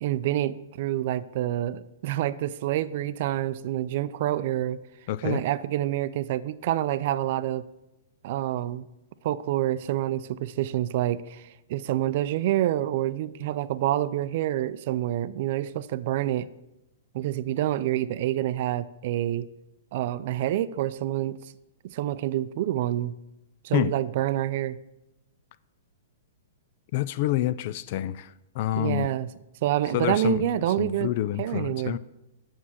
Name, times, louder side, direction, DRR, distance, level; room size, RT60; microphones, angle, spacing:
voice 1, 0.0-4.8 5.2-7.6 8.2-8.9 9.2-16.5 17.1-19.5 19.9-21.4 21.8-23.1 23.6-24.8 28.7-29.3 29.6-31.1 31.4-32.0, right 13 dB, 55° right, 16 dB, 0.4 m, -27 dB
voice 2, 5.1-5.4 23.7-23.9 26.9-29.1 29.9-30.5 30.8-32.0, left 14 dB, 50° left, 15 dB, 0.3 m, -27 dB
6.3 x 6.2 x 7.1 m, 0.92 s
hypercardioid pair, 130°, 0 cm